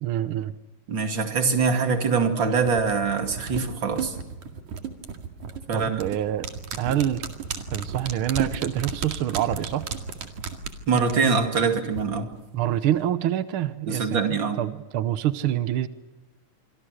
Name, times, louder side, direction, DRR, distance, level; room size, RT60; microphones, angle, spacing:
voice 1, 0.0-0.5 5.7-6.5 6.8-7.2 7.7-9.9 12.5-15.9, right 12 dB, 85° right, 12 dB, 1.1 m, -26 dB
voice 2, 0.9-4.2 5.7-6.0 10.9-12.3 13.9-14.6, right 5 dB, 40° right, 5 dB, 2.7 m, -23 dB
sound 1, 2.6-12.0 12.3-12.4, right 6 dB, 65° right, 3.4 m, -34 dB
27.5 x 24.5 x 6.5 m, 1.1 s
omnidirectional pair, 3.8 m